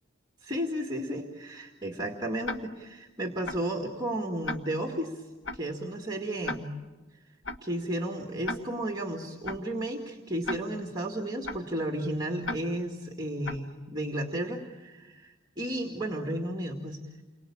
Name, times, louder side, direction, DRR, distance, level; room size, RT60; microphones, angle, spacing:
voice 1, 0.4-5.2 5.5-6.7 7.6-17.0, right 1 dB, 20° right, 2 dB, 2.1 m, -33 dB
Tick-tock, 2.4-2.6 3.4-3.6 4.4-4.6 5.4-5.6 6.4-6.6 7.4-7.6 8.4-8.6 9.4-9.6 10.4-10.6 11.4-11.6 12.4-12.6 13.4-13.6, left 2 dB, 70° left, 1.4 m, -33 dB
29.5 x 23.0 x 8.7 m, 1.2 s
head